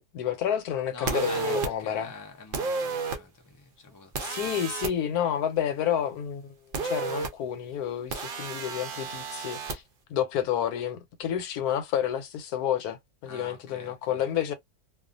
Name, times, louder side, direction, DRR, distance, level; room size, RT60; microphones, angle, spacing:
voice 1, 0.0-2.1 4.2-6.5 6.8-9.8 10.1-14.5, left 9 dB, 85° left, 1.1 m, -30 dB
voice 2, 0.9-4.3 13.3-14.2, left 3 dB, 30° left, 0.3 m, -44 dB
sound 1, 1.1-1.7 2.5-3.2 4.1-4.9 6.7-7.3 8.1-9.8, right 4 dB, 55° right, 0.6 m, -31 dB
2.4 x 2.4 x 2.5 m
omnidirectional pair, 1.6 m